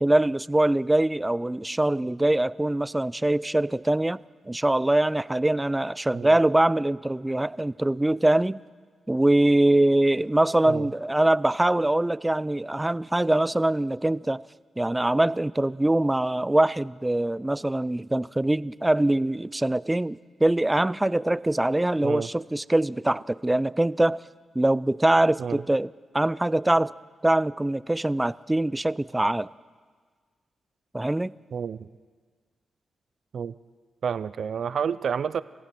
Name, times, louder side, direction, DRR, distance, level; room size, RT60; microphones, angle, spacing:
voice 1, 0.0-4.2 4.5-8.6 9.1-14.4 14.8-24.2 24.5-25.9 26.1-26.9 27.2-29.5 30.9-31.3, right 1 dB, 15° right, 19 dB, 0.5 m, -23 dB
voice 2, 31.5-31.9 33.3-33.5 34.0-35.4, right 7 dB, 70° right, 16 dB, 0.5 m, -29 dB
28.0 x 15.5 x 6.0 m, 1.5 s
supercardioid pair, 55°, 0 cm